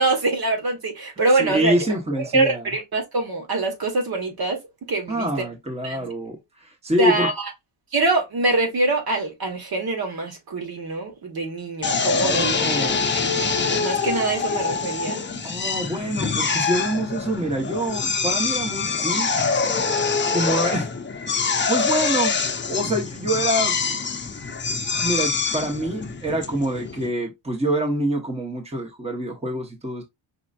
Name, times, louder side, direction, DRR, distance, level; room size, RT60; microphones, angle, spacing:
voice 1, 0.0-1.7 2.2-4.6 4.9-5.3 5.8-6.1 7.0-7.5 7.9-15.2, right 2 dB, 45° right, 1.6 m, -24 dB
voice 2, 1.4-2.6 5.1-7.3 12.2-13.1 15.4-19.3 20.3-20.9 21.3-22.3 22.6-23.8 24.9-30.0, right 1 dB, 15° right, 1.2 m, -26 dB
Drill, 11.8-27.1, left 5 dB, 25° left, 0.8 m, -25 dB
5.4 x 3.0 x 2.5 m
cardioid pair, 100°, 49 cm